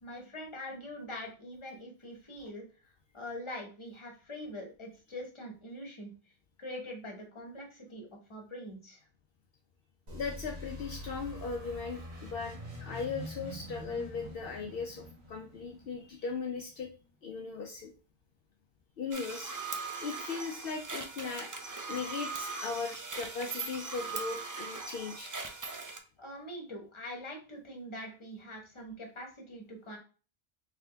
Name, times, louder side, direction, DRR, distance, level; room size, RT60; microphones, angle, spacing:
voice 1, 0.0-9.0 26.2-30.0, left 1 dB, 30° left, 1 dB, 1.1 m, -44 dB
voice 2, 10.1-16.9 17.2-17.9 19.0-19.5 20.0-21.6 21.9-25.3, left 5 dB, 65° left, 2 dB, 0.8 m, -38 dB
sound 1, 10.1-16.6, equal, 85° right, 1.6 m, -45 dB
sound 2, 19.1-26.0, right 4 dB, 35° right, 0.3 m, -40 dB
3.7 x 3.4 x 3.3 m, 0.36 s
omnidirectional pair, 1.1 m